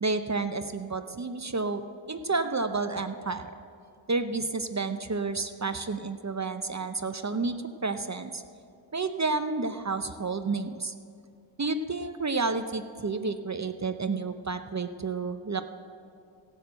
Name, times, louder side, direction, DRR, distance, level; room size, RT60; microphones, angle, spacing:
voice 1, 0.0-3.5 4.1-8.4 8.9-10.9 11.6-15.6, right 3 dB, 35° right, 9 dB, 0.6 m, -30 dB
16.0 x 6.7 x 7.8 m, 2.4 s
wide cardioid pair, 50°, 46 cm